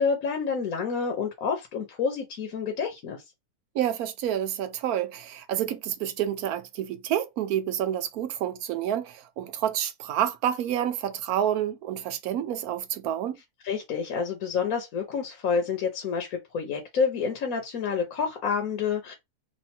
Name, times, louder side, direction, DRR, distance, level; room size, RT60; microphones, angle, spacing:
voice 1, 0.0-3.2 13.6-19.1, left 5 dB, 70° left, 1.3 m, -28 dB
voice 2, 3.7-13.4, right 10 dB, 75° right, 1.1 m, -29 dB
3.2 x 2.5 x 4.3 m
omnidirectional pair, 1.6 m